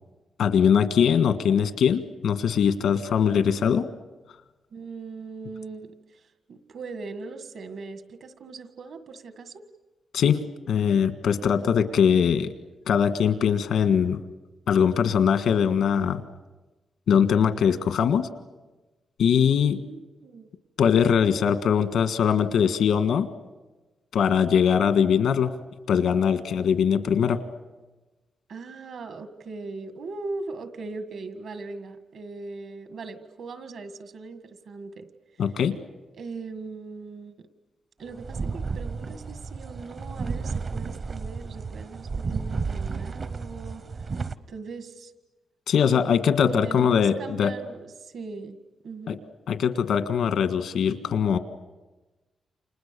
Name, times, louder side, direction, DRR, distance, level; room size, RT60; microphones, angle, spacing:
voice 1, 0.4-3.9 10.1-12.5 12.9-14.2 14.7-16.2 17.1-18.3 19.2-19.8 20.8-23.3 24.1-25.5 25.9-27.4 35.4-35.8 45.7-47.5 49.1-49.2 49.5-51.4, left 7 dB, 90° left, 10 dB, 1.6 m, -21 dB
voice 2, 4.7-6.2 6.5-9.6 19.7-20.5 28.5-35.1 36.2-37.4 38.0-43.8 44.5-45.1 46.4-48.6 48.8-49.2, right 4 dB, 65° right, 9 dB, 1.8 m, -39 dB
sound 1, 38.1-44.4, right 4 dB, 40° right, 0.8 m, -32 dB
29.5 x 27.0 x 6.9 m, 1.1 s
wide cardioid pair, 150°, 0 cm